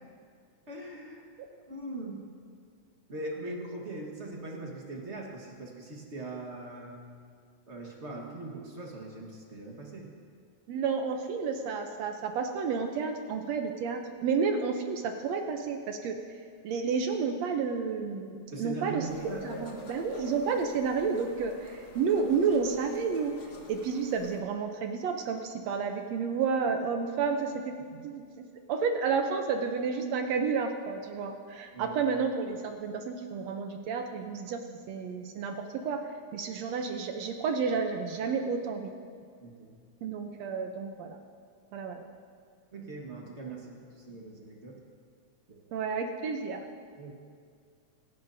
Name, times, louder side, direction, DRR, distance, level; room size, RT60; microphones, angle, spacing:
voice 1, 0.7-1.3 1.7-2.2 3.1-7.0 7.7-10.1 18.5-19.7 27.9-28.0 31.7-32.0 39.4-39.7 42.7-44.8 45.5-45.8 47.0-47.1, right 2 dB, 45° right, -1 dB, 0.8 m, -41 dB
voice 2, 10.7-16.2 16.6-19.1 19.4-23.3 23.7-27.7 28.0-28.3 28.7-36.0 36.3-38.9 40.0-41.2 41.7-42.0 45.7-46.6, right 5 dB, 70° right, 5 dB, 1.7 m, -31 dB
sound 1, 19.1-24.4, left 1 dB, 55° left, 1.0 m, -46 dB
25.5 x 11.0 x 2.7 m, 2.1 s
omnidirectional pair, 3.5 m